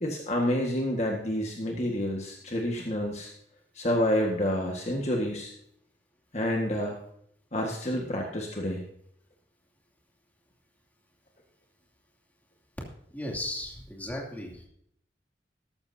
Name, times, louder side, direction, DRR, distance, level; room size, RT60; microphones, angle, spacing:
voice 1, 0.0-3.3 3.7-5.5 6.3-7.0 7.5-8.8, equal, 40° left, 0 dB, 1.6 m, -28 dB
voice 2, 13.1-14.7, left 1 dB, 10° left, -2 dB, 2.7 m, -36 dB
13.5 x 13.5 x 2.7 m, 0.70 s
head